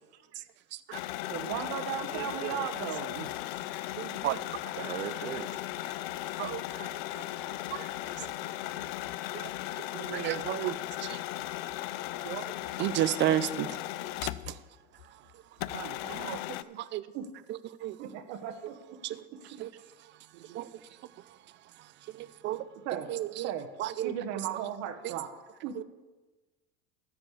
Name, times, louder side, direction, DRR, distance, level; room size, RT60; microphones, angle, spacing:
voice 1, 0.1-0.5 1.3-1.5 2.5-2.6 4.7-5.6 6.7-7.7 8.0-9.0 15.2-15.3 20.3-20.7, right 11 dB, 85° right, 10 dB, 0.8 m, -44 dB
sound 1, 0.9-14.7 15.0-15.1 15.6-16.6, left 16 dB, 65° left, 0.5 m, -37 dB
voice 2, 1.3-3.3 15.7-16.8 17.1-17.2 18.0-18.7 22.8-23.1 23.4-23.7 24.0-25.3 25.6-25.7, right 9 dB, 55° right, 8 dB, 1.3 m, -36 dB
voice 3, 4.0-4.4 6.4-6.6 7.7-7.8 9.4-9.5 9.9-10.8 11.1-11.2 12.3-12.4 12.8-13.7 16.2-16.4 16.9-17.0 17.8-17.9 19.0-19.1 19.6-19.7 20.6-20.7 22.4-22.6 23.1-23.5 23.8-24.1 25.8-25.9, right 13 dB, 35° right, 16 dB, 0.5 m, -31 dB
13.0 x 5.1 x 7.0 m, 1.2 s
supercardioid pair, 110°, 32 cm